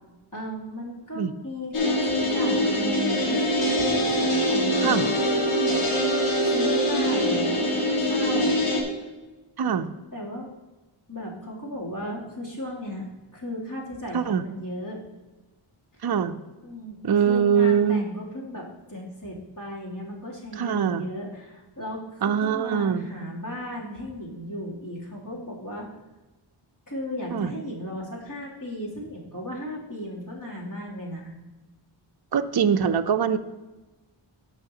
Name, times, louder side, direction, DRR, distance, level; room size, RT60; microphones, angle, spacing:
voice 1, 0.3-5.8 6.4-8.6 10.1-10.5 11.1-13.1 13.3-15.0 16.6-17.0 17.2-25.9 26.9-31.3, left 1 dB, 40° left, -6 dB, 2.9 m, -35 dB
sound 1, 1.7-8.8, equal, 85° left, 1.9 m, -23 dB
voice 2, 9.6-9.9 14.1-14.4 16.0-16.4 17.0-18.1 20.6-21.1 22.2-23.1 27.3-27.5 32.3-33.4, right 7 dB, 50° right, 8 dB, 0.5 m, -23 dB
14.0 x 5.8 x 2.8 m, 1.1 s
wide cardioid pair, 60°, 50 cm